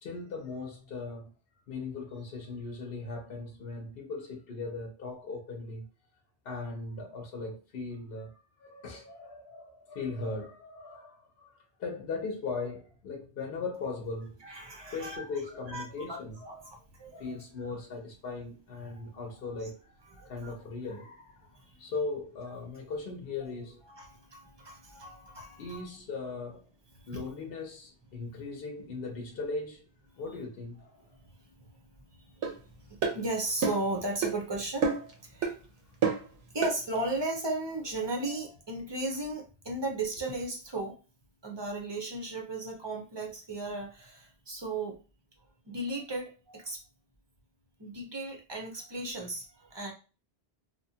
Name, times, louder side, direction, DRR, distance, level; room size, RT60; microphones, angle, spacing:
voice 1, 0.0-1.3 1.7-5.9 6.4-14.4 14.8-16.6 17.1-19.8 20.1-21.5 21.8-23.8 25.6-26.7 27.1-29.8 30.1-31.0, left 3 dB, 60° left, 0.9 m, -38 dB
voice 2, 14.4-15.3 15.7-16.2 16.5-17.2 20.1-20.5 21.5-21.9 23.9-25.9 27.0-27.2 31.2-31.7 32.2-32.5 32.9-34.9 35.2-35.6 36.5-41.0 41.4-45.0 45.6-46.8 47.8-49.9, right 2 dB, 30° right, 0.5 m, -36 dB
sound 1, 32.4-32.5 33.0-33.2 33.6-33.9 34.2-34.4 34.8-35.1 35.4-35.6 36.0-36.3 36.6-36.8, right 5 dB, 80° right, 1.0 m, -28 dB
2.9 x 2.1 x 2.7 m
omnidirectional pair, 1.2 m